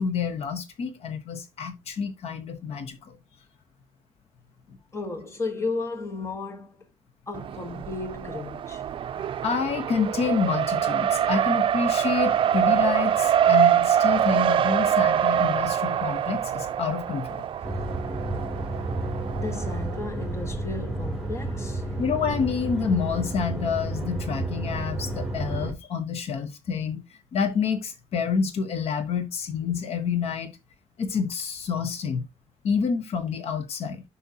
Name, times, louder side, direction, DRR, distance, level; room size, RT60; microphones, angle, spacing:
voice 1, 0.0-3.2 4.7-4.8 9.1-17.5 22.0-27.0 27.3-30.5 31.0-32.2 32.6-34.0, left 6 dB, 65° left, 1.1 m, -28 dB
voice 2, 4.9-6.8 7.3-8.8 19.3-21.8, left 3 dB, 25° left, 1.2 m, -34 dB
Race car auto racing, 7.3-20.0, right 9 dB, 50° right, 0.5 m, -24 dB
sound 1, 17.6-25.7, right 2 dB, 5° right, 2.5 m, -31 dB
8.3 x 5.4 x 2.8 m
cardioid pair, 130°, 11 cm